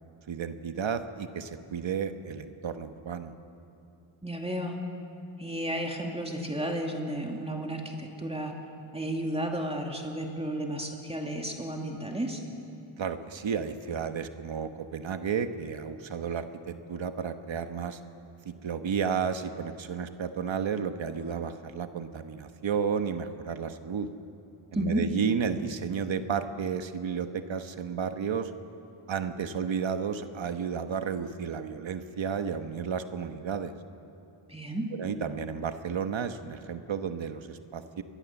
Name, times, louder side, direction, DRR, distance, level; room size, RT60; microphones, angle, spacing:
voice 1, 0.3-3.3 13.0-18.0 18.4-24.1 24.7-28.5 29.1-33.7 34.9-38.0, right 6 dB, 65° right, 8 dB, 1.3 m, -32 dB
voice 2, 4.2-4.8 5.4-8.5 8.9-12.4 24.7-25.0 34.5-34.9, right 1 dB, 10° right, 1 dB, 2.4 m, -32 dB
26.5 x 20.5 x 7.2 m, 3.0 s
wide cardioid pair, 100°, 49 cm